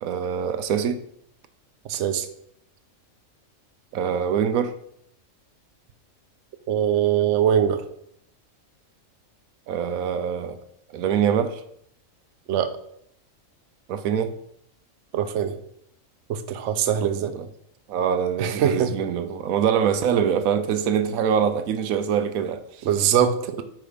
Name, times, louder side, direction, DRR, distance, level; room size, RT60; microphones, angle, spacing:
voice 1, 0.0-1.0 3.9-4.8 9.7-10.6 10.9-11.6 13.9-14.4 17.0-17.5 17.9-22.9, right 8 dB, 85° right, 1.1 m, -24 dB
voice 2, 1.9-2.3 6.7-7.8 12.5-12.7 15.1-15.5 16.3-17.3 18.4-18.9 22.9-23.6, right 9 dB, 65° right, 0.9 m, -22 dB
9.1 x 3.3 x 5.1 m
omnidirectional pair, 1.4 m